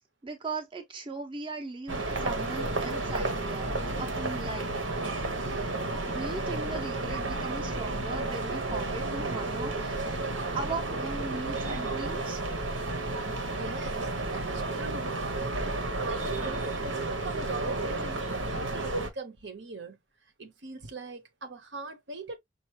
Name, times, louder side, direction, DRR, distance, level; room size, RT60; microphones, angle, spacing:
voice 1, 0.2-4.7 6.1-10.0 10.5-12.4, right 3 dB, 25° right, 0.8 m, -38 dB
sound 1, 1.9-19.1, right 2 dB, 85° right, 1.3 m, -32 dB
voice 2, 13.5-15.2 15.9-20.0 20.4-22.4, right 2 dB, 65° right, 1.1 m, -41 dB
5.7 x 2.6 x 3.0 m
head